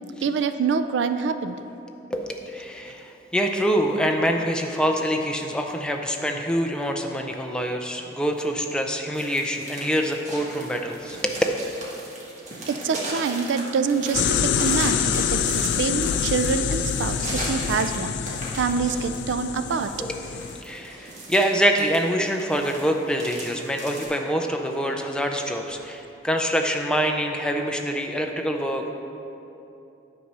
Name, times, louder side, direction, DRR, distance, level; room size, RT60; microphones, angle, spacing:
voice 1, 0.2-1.6 12.7-19.9, right 5 dB, 75° right, 10 dB, 0.3 m, -26 dB
voice 2, 2.1-11.4 20.0-28.9, equal, 5° left, 2 dB, 0.4 m, -25 dB
sound 1, 9.1-24.1, right 1 dB, 40° right, 1.5 m, -38 dB
sound 2, 14.1-20.6, left 8 dB, 70° left, 0.3 m, -26 dB
9.3 x 4.1 x 6.0 m, 2.8 s
head